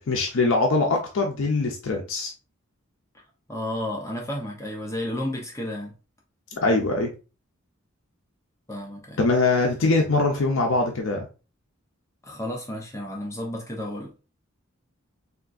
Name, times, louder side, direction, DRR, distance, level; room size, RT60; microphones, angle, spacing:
voice 1, 0.1-2.3 6.5-7.1 9.2-11.3, left 3 dB, 70° left, 0.5 m, -22 dB
voice 2, 3.5-5.9 8.7-9.2 12.2-14.1, left 1 dB, 15° left, 0.5 m, -32 dB
3.5 x 2.5 x 2.4 m
head